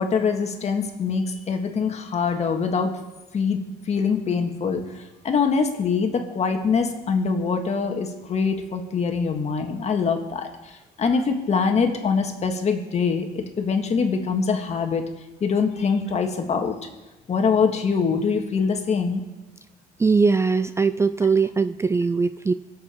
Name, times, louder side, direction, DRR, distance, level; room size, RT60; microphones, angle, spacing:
voice 1, 0.0-2.9 3.3-15.0 15.4-16.8 17.3-19.2, left 5 dB, 40° left, 4 dB, 1.9 m, -24 dB
voice 2, 20.0-22.5, right 4 dB, 15° right, 12 dB, 0.3 m, -20 dB
22.0 x 7.8 x 4.6 m, 1.1 s
cardioid pair, 110°, 17 cm